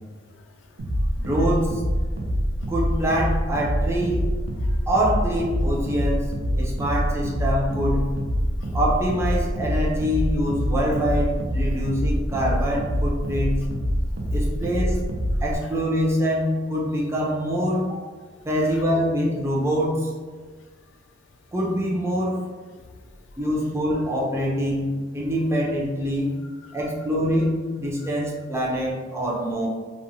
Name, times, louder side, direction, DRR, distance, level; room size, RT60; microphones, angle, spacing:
voice 1, 0.2-1.3 2.1-2.2 2.6-2.7 4.6-4.9 8.6-8.7 14.2-14.7 15.3-15.4 22.8-23.2 26.6-26.8, left 4 dB, 65° left, 5 dB, 0.3 m, -52 dB
sound 1, 0.8-15.6, equal, 90° right, 0.5 m, -25 dB
voice 2, 1.2-1.8 2.7-4.3 4.9-6.2 6.6-8.1 8.7-13.6 14.3-15.0 15.4-18.0 18.4-20.1 21.5-22.4 23.4-26.3 26.7-29.7, equal, 15° right, -4 dB, 0.5 m, -24 dB
2.9 x 2.1 x 2.6 m, 1.5 s
head